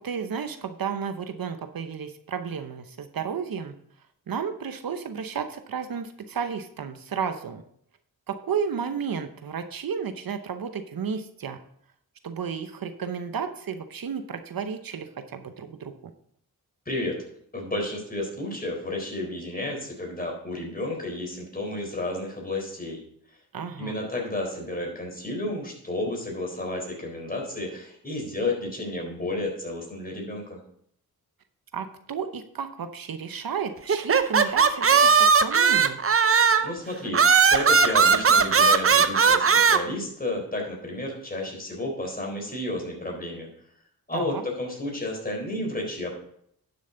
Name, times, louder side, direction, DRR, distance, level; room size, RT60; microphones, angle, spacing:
voice 1, 0.0-3.8 4.3-7.6 8.3-11.6 12.2-15.9 23.5-24.0 31.7-36.0 44.1-44.4, right 6 dB, 65° right, 9 dB, 0.9 m, -32 dB
voice 2, 16.9-17.2 17.5-23.0 23.8-30.6 36.6-43.5 44.1-46.1, left 1 dB, 25° left, 1 dB, 4.0 m, -32 dB
sound 1, 33.9-36.7 37.1-39.8, right 5 dB, 35° right, 0.7 m, -18 dB
11.0 x 7.0 x 3.9 m, 0.68 s
cardioid pair, 70°, 37 cm